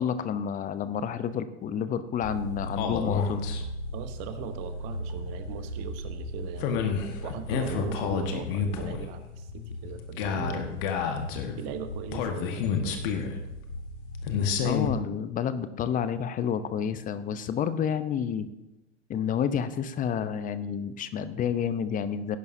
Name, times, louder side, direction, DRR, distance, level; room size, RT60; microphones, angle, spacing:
voice 1, 0.0-3.5 14.6-18.5 19.1-22.4, left 8 dB, 25° left, 13 dB, 0.7 m, -29 dB
sound 1, 2.2-14.9, left 5 dB, 50° left, 1.6 m, -31 dB
voice 2, 3.9-6.8 7.2-10.8 11.6-13.1, right 8 dB, 45° right, 9 dB, 1.2 m, -39 dB
18.0 x 10.5 x 2.7 m, 0.96 s
figure-of-eight pair, 95°, 35 cm